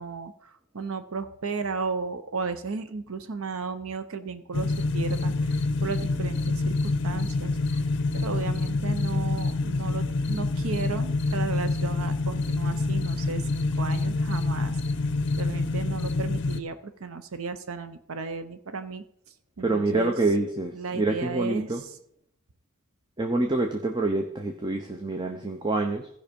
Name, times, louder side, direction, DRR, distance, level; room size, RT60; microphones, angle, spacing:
voice 1, 0.0-7.8 8.1-14.8 15.4-19.0 19.6-20.1 20.7-21.9, right 4 dB, 70° right, 11 dB, 0.7 m, -34 dB
sound 1, 4.5-16.6, left 3 dB, 55° left, 0.6 m, -27 dB
voice 2, 19.6-21.8 23.2-26.1, right 2 dB, 20° right, 4 dB, 0.7 m, -26 dB
15.5 x 5.6 x 5.2 m, 0.70 s
head